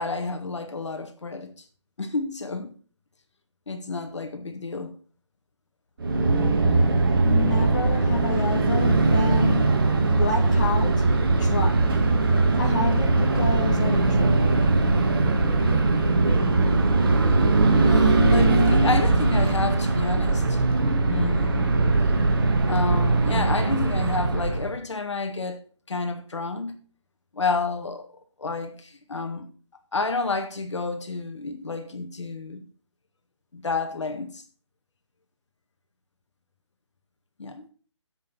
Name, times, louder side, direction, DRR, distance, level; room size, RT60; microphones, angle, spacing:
voice 1, 0.0-1.5 2.0-2.7 3.7-4.9 17.8-20.6 21.0-21.7 22.7-25.6 25.9-26.8 27.3-28.1 28.4-29.5 29.9-32.6 33.5-34.4 37.4-37.7, left 3 dB, 65° left, 1.9 m, -29 dB
sound 1, 6.0-24.7, right 3 dB, 45° right, 2.0 m, -21 dB
voice 2, 7.2-9.8 10.1-11.1 11.4-12.0 12.6-14.4, left 4 dB, 35° left, 1.8 m, -29 dB
7.9 x 6.6 x 7.3 m
figure-of-eight pair, 165°, 16 cm